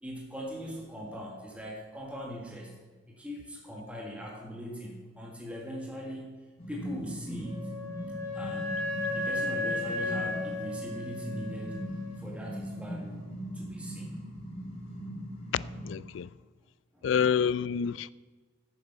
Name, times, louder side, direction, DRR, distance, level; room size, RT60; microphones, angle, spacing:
voice 1, 0.0-2.7 3.1-6.3 6.7-7.7 8.3-8.7 9.1-11.8 12.2-13.2 13.5-14.2 16.9-17.1, equal, 5° right, 1.6 m, -41 dB
sound 1, 6.6-15.9, equal, 35° left, 3.0 m, -40 dB
Wind instrument woodwind instrument, 7.4-12.1, left 2 dB, 40° right, 2.1 m, -34 dB
voice 2, 15.9-16.3 17.0-18.1, left 7 dB, 70° left, 0.3 m, -27 dB
10.5 x 8.5 x 5.5 m
head